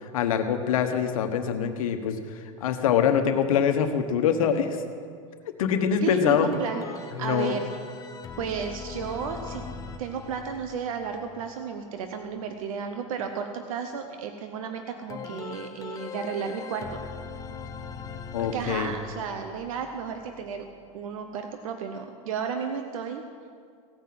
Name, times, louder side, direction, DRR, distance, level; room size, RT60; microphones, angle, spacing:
voice 1, 0.0-2.2 2.6-4.8 5.6-6.5 7.1-7.6 18.3-18.9, left 8 dB, 80° left, 7 dB, 1.2 m, -24 dB
voice 2, 6.0-7.7 8.4-9.6 10.0-17.0 18.4-20.7 20.9-23.2, right 6 dB, 80° right, 6 dB, 0.9 m, -33 dB
sound 1, 6.5-12.3 15.1-21.1, left 5 dB, 20° left, 0.9 m, -41 dB
16.5 x 5.7 x 7.6 m, 2.1 s
supercardioid pair, 130°, 17 cm